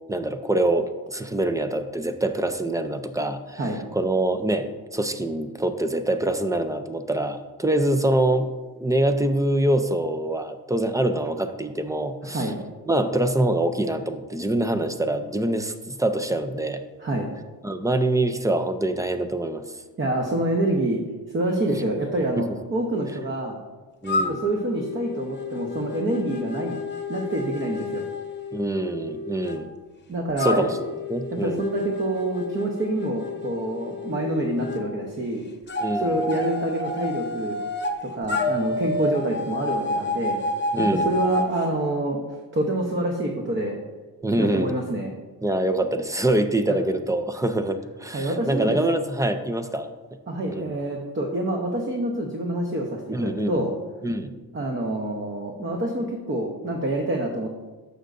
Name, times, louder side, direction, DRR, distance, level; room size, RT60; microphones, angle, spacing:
voice 1, 0.1-3.6 3.9-8.5 8.8-12.5 12.9-16.8 17.6-19.6 22.4-22.5 24.0-24.4 28.5-29.7 30.4-31.6 35.8-36.2 40.7-41.1 44.2-44.8 45.4-49.9 50.5-50.7 53.1-53.6 54.0-54.3, right 1 dB, 10° right, 8 dB, 0.4 m, -25 dB
voice 2, 12.2-12.6 17.0-17.3 20.0-21.0 21.3-23.6 24.3-26.7 27.1-28.0 30.1-30.7 31.3-35.5 35.9-37.6 38.0-40.4 41.0-42.2 42.5-43.8 44.3-45.1 48.1-48.8 50.3-53.7 54.5-57.5, right 1 dB, 30° right, 1 dB, 0.9 m, -27 dB
sound 1, 24.0-29.6 30.4-34.8 35.7-37.9 38.3-41.5, left 2 dB, 30° left, 0.9 m, -30 dB
11.5 x 6.6 x 2.6 m, 1.2 s
cardioid pair, 135°, 39 cm